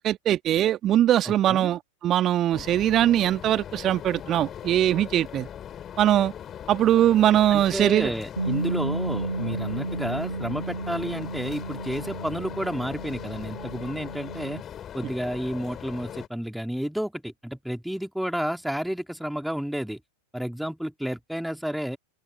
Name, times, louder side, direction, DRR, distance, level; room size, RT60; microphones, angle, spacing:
voice 1, 0.0-5.5 6.0-6.3 6.7-8.1, right 12 dB, 30° right, 1.8 m, -21 dB
voice 2, 1.2-1.7 7.5-14.6 14.9-20.0 20.3-22.0, equal, ahead, 2.7 m, -31 dB
sound 1, 2.5-16.3, left 9 dB, 25° left, 5.7 m, -40 dB
Bass guitar, 8.4-14.6, right 2 dB, 85° right, 7.1 m, -33 dB
figure-of-eight pair, 90°, 0 cm